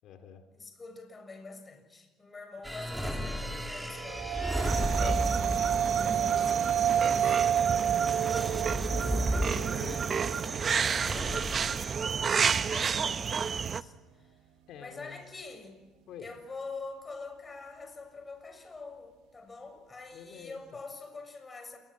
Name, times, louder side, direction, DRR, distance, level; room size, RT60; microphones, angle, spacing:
voice 1, 0.0-0.4 8.0-8.3 8.9-10.8 14.7-15.2 16.1-16.3 20.1-20.6, left 8 dB, 70° left, 6 dB, 3.3 m, -47 dB
voice 2, 0.5-7.4 7.9-8.1 9.2-10.0 11.0-11.7 12.5-14.4 14.8-15.8 16.2-21.8, left 3 dB, 25° left, 7 dB, 6.8 m, -45 dB
sound 1, 2.6-11.9, equal, ahead, 3.6 m, -35 dB
sound 2, 3.9-12.4, right 8 dB, 80° right, 1.4 m, -30 dB
sound 3, 4.6-13.8, right 6 dB, 35° right, 0.9 m, -31 dB
27.5 x 21.5 x 8.8 m, 1.2 s
cardioid pair, 100°, 0 cm